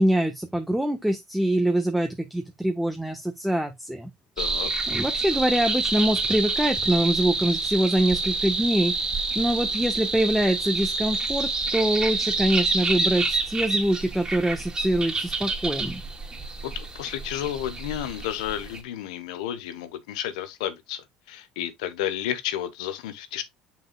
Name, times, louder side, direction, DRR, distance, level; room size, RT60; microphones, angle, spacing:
voice 1, 0.0-4.1 4.9-8.9 9.3-16.0, right 1 dB, 5° right, 1.3 m, -24 dB
voice 2, 4.4-4.7 16.6-23.4, left 11 dB, 80° left, 1.1 m, -32 dB
sound 1, 4.4-18.8, right 3 dB, 20° right, 2.6 m, -28 dB
7.3 x 5.8 x 2.3 m
hypercardioid pair, 70°, 4 cm